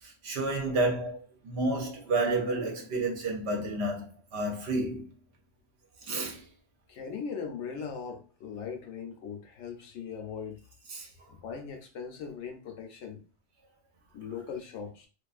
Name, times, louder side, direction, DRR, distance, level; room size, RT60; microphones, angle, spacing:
voice 1, 0.0-5.1 6.0-6.4 10.9-11.1, right 2 dB, 65° right, 0.8 m, -30 dB
voice 2, 6.9-10.6 11.3-13.2 14.1-15.1, left 6 dB, 70° left, 0.8 m, -39 dB
2.4 x 2.4 x 2.3 m
omnidirectional pair, 1.3 m